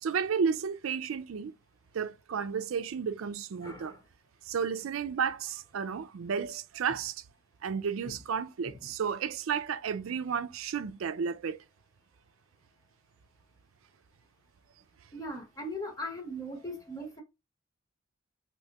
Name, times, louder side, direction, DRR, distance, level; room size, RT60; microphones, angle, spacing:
voice 1, 0.0-1.5 1.9-4.0 4.5-7.2 7.6-11.6, right 6 dB, 90° right, 0.4 m, -32 dB
voice 2, 3.6-4.0 8.0-8.1 15.1-17.2, equal, 20° left, 0.9 m, -39 dB
3.3 x 2.7 x 2.8 m
head